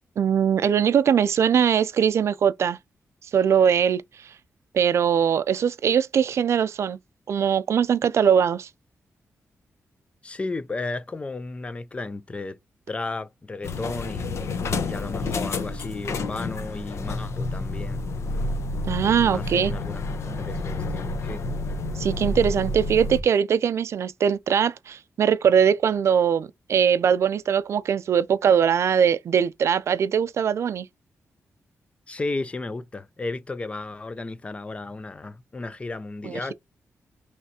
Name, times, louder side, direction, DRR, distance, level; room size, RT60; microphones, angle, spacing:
voice 1, 0.2-2.8 3.3-4.0 4.7-7.0 7.3-8.7 18.9-19.7 22.0-30.9 36.3-36.4, right 8 dB, 65° right, 0.4 m, -21 dB
voice 2, 10.2-12.6 12.9-14.6 14.9-18.0 19.3-21.4 32.1-36.5, left 3 dB, 25° left, 0.4 m, -34 dB
sound 1, 13.6-23.2, left 2 dB, 65° left, 0.8 m, -29 dB
5.7 x 3.2 x 2.8 m
wide cardioid pair, 140°, 5 cm